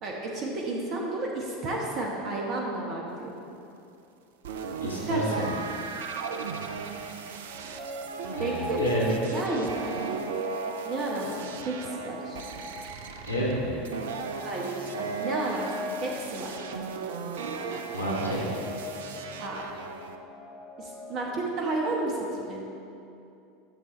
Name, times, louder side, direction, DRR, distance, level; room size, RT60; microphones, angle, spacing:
voice 1, 0.0-3.3 5.1-5.5 8.4-9.9 10.8-12.4 14.4-16.5 19.4-19.6 20.8-22.6, right 2 dB, 40° right, -2 dB, 1.2 m, -32 dB
sound 1, 4.4-20.2, right 5 dB, 65° right, 0.5 m, -36 dB
voice 2, 4.8-5.5 8.4-9.1 13.2-13.8 17.9-18.6, equal, 90° right, -4 dB, 1.9 m, -30 dB
sound 2, 7.3-21.4, left 3 dB, 40° left, 1.6 m, -43 dB
12.0 x 7.2 x 3.2 m, 2.7 s
figure-of-eight pair, 80°, 0 cm